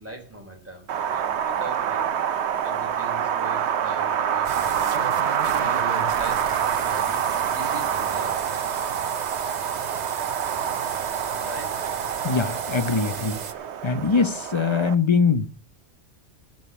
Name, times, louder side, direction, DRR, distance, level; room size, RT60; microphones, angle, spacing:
voice 1, 0.0-2.0 2.6-5.1 5.4-5.8 6.2-6.6 6.9-8.7 11.5-11.9, right 1 dB, 10° right, 3.3 m, -41 dB
Wind, 0.9-14.9, right 9 dB, 85° right, 1.0 m, -26 dB
sound 1, 4.4-13.5, right 5 dB, 45° right, 0.9 m, -36 dB
voice 2, 12.2-13.4 13.8-15.5, left 5 dB, 30° left, 0.8 m, -22 dB
13.5 x 5.4 x 7.0 m
omnidirectional pair, 1.1 m